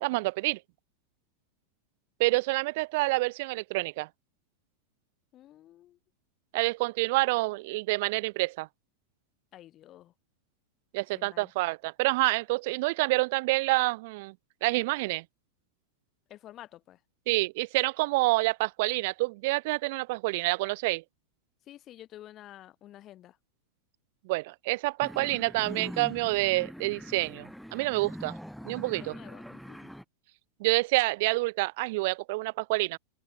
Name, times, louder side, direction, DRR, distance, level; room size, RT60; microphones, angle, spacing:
voice 1, 0.0-0.6 2.2-4.1 6.5-8.7 10.9-14.3 14.6-15.2 17.3-21.0 24.3-28.4 28.7-29.1 30.6-33.0, right 23 dB, 50° right, 0.6 m, -28 dB
voice 2, 5.3-6.0 9.5-10.1 11.1-11.5 16.3-17.0 21.7-23.4 29.0-29.9, left 13 dB, 30° left, 4.2 m, -50 dB
sound 1, 25.0-30.0, equal, ahead, 1.5 m, -43 dB
figure-of-eight pair, 90°, 0 cm